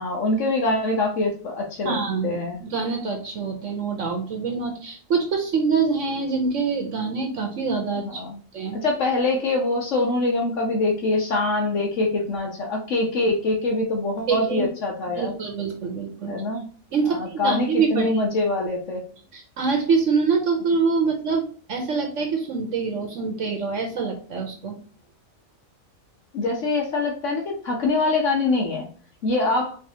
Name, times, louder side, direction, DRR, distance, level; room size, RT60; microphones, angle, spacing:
voice 1, 0.0-1.9 2.2-2.6 8.0-8.4 8.7-15.3 16.3-16.7 17.1-19.0 26.3-28.9 29.2-29.8, left 2 dB, 70° left, 0 dB, 1.3 m, -24 dB
voice 2, 1.8-8.2 8.5-8.8 14.3-14.7 15.1-16.3 16.9-18.1 19.3-21.4 21.7-24.8, right 5 dB, 70° right, 3 dB, 1.2 m, -25 dB
4.7 x 3.3 x 2.8 m, 0.42 s
omnidirectional pair, 1.3 m